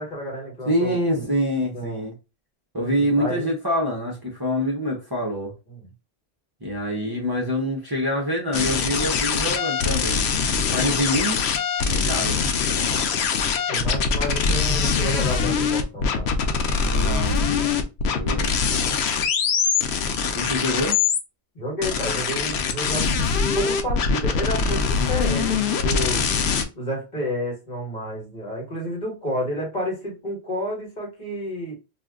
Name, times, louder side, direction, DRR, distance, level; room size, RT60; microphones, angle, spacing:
voice 1, 0.0-1.2 1.7-2.1 3.2-3.5 5.7-5.9 13.7-16.3 21.5-23.3 23.5-26.3 26.7-31.8, equal, 45° left, 1.5 m, -30 dB
voice 2, 0.7-2.1 2.7-5.5 6.6-10.3 10.7-11.4 11.9-12.4 16.8-17.8 18.1-18.6 20.3-21.0, equal, 25° right, 0.7 m, -26 dB
sound 1, 8.5-21.2 21.8-26.6, left 5 dB, 80° left, 0.8 m, -23 dB
2.6 x 2.3 x 3.5 m
omnidirectional pair, 1.1 m